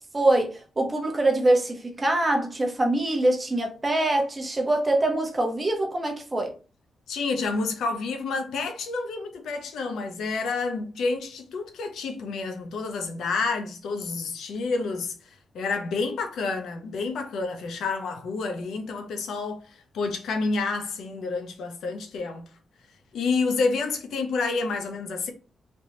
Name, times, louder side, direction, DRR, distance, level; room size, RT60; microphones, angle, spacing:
voice 1, 0.1-6.5, right 1 dB, 20° right, 0.8 m, -24 dB
voice 2, 7.1-15.1 15.5-22.4 23.1-25.3, left 4 dB, 85° left, 0.7 m, -29 dB
3.3 x 3.0 x 2.7 m
wide cardioid pair, 160°, 0 cm